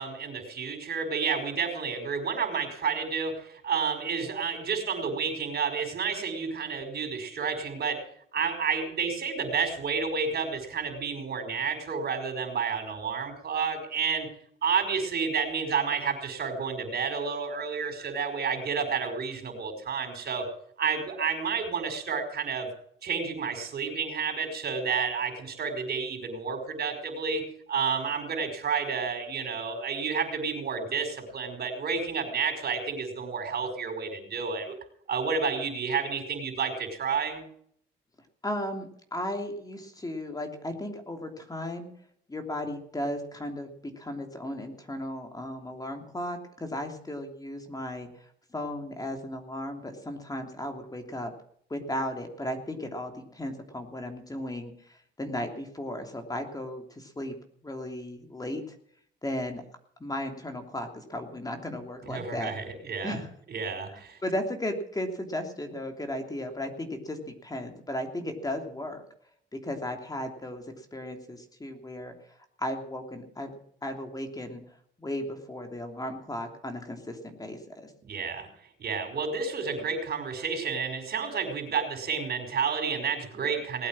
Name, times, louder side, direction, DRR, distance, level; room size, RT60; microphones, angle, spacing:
voice 1, 0.0-8.0 8.3-14.3 14.6-20.5 20.8-22.7 23.0-27.4 27.7-34.8 35.1-37.4 62.0-63.2 63.5-64.2 78.0-78.5 78.8-83.9, right 5 dB, 55° right, 6 dB, 5.5 m, -30 dB
voice 2, 38.4-41.9 42.3-51.3 51.7-57.3 57.6-58.7 59.2-59.6 60.0-62.5 63.0-63.3 64.2-69.0 69.5-72.1 72.6-73.5 73.8-74.6 75.0-77.9, left 1 dB, 20° left, 4 dB, 3.1 m, -35 dB
19.5 x 8.7 x 7.6 m, 0.64 s
cardioid pair, 90°, 20 cm